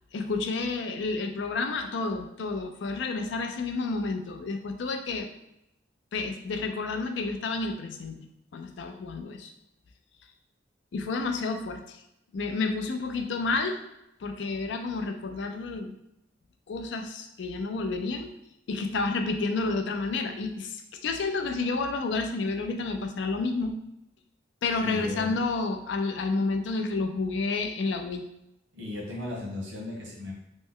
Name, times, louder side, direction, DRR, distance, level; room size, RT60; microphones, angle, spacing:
voice 1, 0.1-5.3 6.1-8.3 8.5-9.5 10.9-12.0 12.3-13.8 14.2-15.9 16.7-18.3 18.7-23.8 24.6-28.3, left 3 dB, 65° left, 5 dB, 0.4 m, -30 dB
voice 2, 24.8-25.3 28.7-30.3, left 2 dB, 85° right, -2 dB, 1.1 m, -36 dB
3.0 x 2.0 x 3.7 m, 0.83 s
head